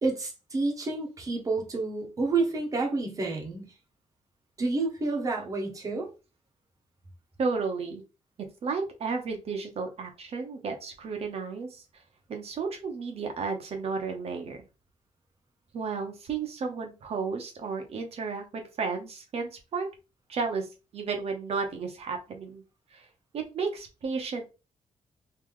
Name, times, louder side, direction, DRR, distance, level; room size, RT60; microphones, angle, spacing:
voice 1, 0.0-3.7 4.6-6.1, right 3 dB, 25° right, 1.1 m, -29 dB
voice 2, 7.4-8.0 8.6-11.8 12.3-14.6 15.7-19.9 20.3-22.6 22.9-23.1 23.3-24.4, right 4 dB, 50° right, 0.9 m, -33 dB
3.2 x 2.8 x 3.6 m
wide cardioid pair, 175°, 13 cm